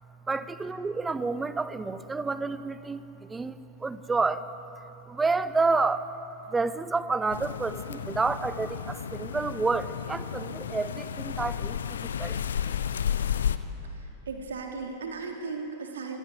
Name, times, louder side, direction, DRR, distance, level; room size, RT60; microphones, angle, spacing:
voice 1, 0.3-4.5 5.1-6.1 6.5-12.4, right 3 dB, 10° right, 14 dB, 1.0 m, -29 dB
sound 1, 7.3-13.6, left 8 dB, 65° left, 1.0 m, -32 dB
voice 2, 13.8-16.2, right 4 dB, 65° right, 2 dB, 3.6 m, -37 dB
27.0 x 20.0 x 8.0 m, 2.9 s
figure-of-eight pair, 90°, 0 cm